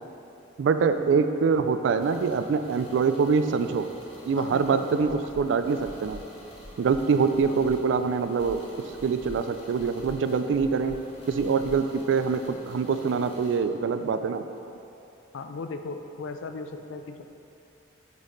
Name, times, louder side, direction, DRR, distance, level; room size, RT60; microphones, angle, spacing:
voice 1, 0.6-3.9 4.3-6.2 6.8-8.6 9.0-11.0 11.3-14.5, right 5 dB, 65° right, 10 dB, 0.3 m, -24 dB
sound 1, 2.0-13.6, equal, 30° left, 1.1 m, -48 dB
voice 2, 4.3-5.5 7.5-7.7 15.3-17.2, left 3 dB, 75° left, 7 dB, 0.4 m, -38 dB
sound 2, 5.0-5.4 5.8-6.2 6.6-7.0 7.3-7.8 8.1-8.6 8.9-9.4 9.7-10.1 10.5-11.0 11.3-12.5, equal, 35° right, 0.8 m, -45 dB
6.3 x 5.3 x 3.8 m, 2.8 s
head